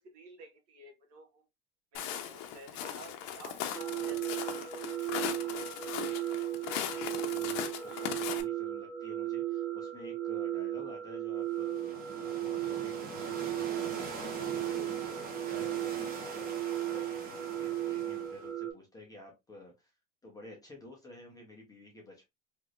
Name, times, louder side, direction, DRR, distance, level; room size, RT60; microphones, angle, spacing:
voice 1, 0.0-1.4 1.9-4.5 5.1-5.6 7.7-7.9, right 3 dB, 50° right, 1.5 m, -52 dB
Walk footsteps, 1.9-8.4, left 9 dB, 65° left, 0.8 m, -38 dB
sound 1, 3.7-18.7, right 12 dB, 85° right, 1.2 m, -36 dB
voice 2, 7.3-12.0 12.4-19.9 20.2-22.2, left 1 dB, 10° left, 0.9 m, -51 dB
sound 2, 11.5-18.5, right 4 dB, 30° right, 1.0 m, -43 dB
3.4 x 3.1 x 2.4 m
cardioid pair, 150°, 32 cm